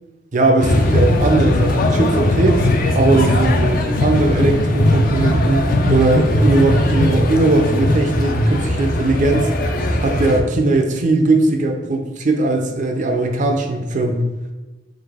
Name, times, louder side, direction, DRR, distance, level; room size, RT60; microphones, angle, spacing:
voice 1, 0.3-2.7 2.9-9.5 10.0-14.2, right 2 dB, 45° right, 4 dB, 0.5 m, -19 dB
sound 1, 0.6-10.4, left 1 dB, 50° left, 0.5 m, -18 dB
3.9 x 3.3 x 3.5 m, 1.1 s
head